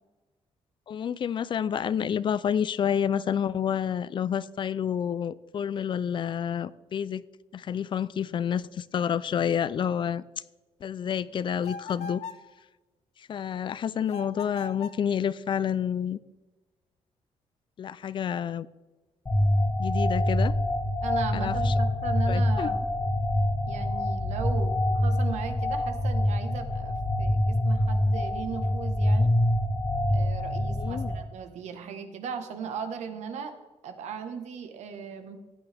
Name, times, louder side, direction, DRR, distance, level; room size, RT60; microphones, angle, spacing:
voice 1, 0.9-7.2 7.5-10.2 10.8-12.2 13.3-16.2 17.8-18.7 19.8-20.5 21.3-21.7 22.3-22.7 30.8-31.1, left 8 dB, 45° left, 18 dB, 0.4 m, -29 dB
sound 1, 11.6-12.5 14.1-15.1, left 4 dB, 85° left, 0.9 m, -39 dB
sound 2, 19.3-31.1, left 1 dB, 25° left, 2.0 m, -25 dB
voice 2, 21.0-22.8 23.7-29.3 30.1-33.5 33.8-35.4, right 6 dB, 85° right, 7 dB, 1.3 m, -37 dB
15.5 x 9.3 x 3.5 m, 1.2 s
cardioid pair, 125°, 11 cm